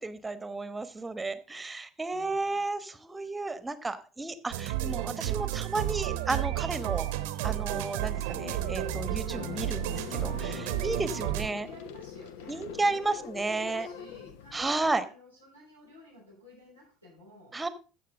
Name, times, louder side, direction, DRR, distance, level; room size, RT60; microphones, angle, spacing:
voice 1, 0.0-7.1 7.4-11.7 12.5-13.9 14.5-15.1 17.5-17.7, right 3 dB, 15° right, 13 dB, 1.1 m, -33 dB
voice 2, 2.1-2.6 11.1-12.7 13.1-17.6, left 1 dB, 90° left, -9 dB, 5.0 m, -52 dB
sound 1, 4.5-11.5, right 15 dB, 65° right, 0.9 m, -32 dB
sound 2, 7.7-14.9, left 10 dB, 65° left, 0.7 m, -43 dB
14.5 x 6.2 x 3.7 m, 0.33 s
figure-of-eight pair, 65°, 0 cm